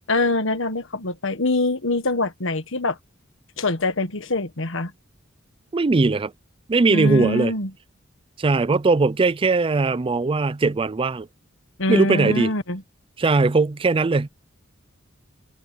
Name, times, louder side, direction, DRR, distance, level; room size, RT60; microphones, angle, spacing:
voice 1, 0.1-3.0 3.6-4.9 6.9-7.7 11.8-12.8, left 2 dB, 65° left, 1.5 m, -24 dB
voice 2, 5.7-6.3 6.7-7.5 8.4-11.3 11.9-12.5 13.2-14.3, right 3 dB, 25° right, 0.4 m, -20 dB
head